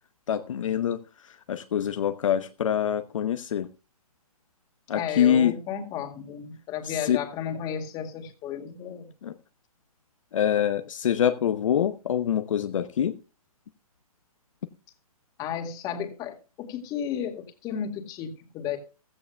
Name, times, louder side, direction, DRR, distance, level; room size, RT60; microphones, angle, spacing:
voice 1, 0.3-3.7 4.9-5.5 6.8-7.2 9.2-9.3 10.3-13.1, left 9 dB, 55° left, 9 dB, 0.9 m, -25 dB
voice 2, 4.9-9.1 15.4-18.8, left 8 dB, 20° left, 6 dB, 2.0 m, -33 dB
16.0 x 13.5 x 2.3 m, 0.33 s
hypercardioid pair, 150°, 19 cm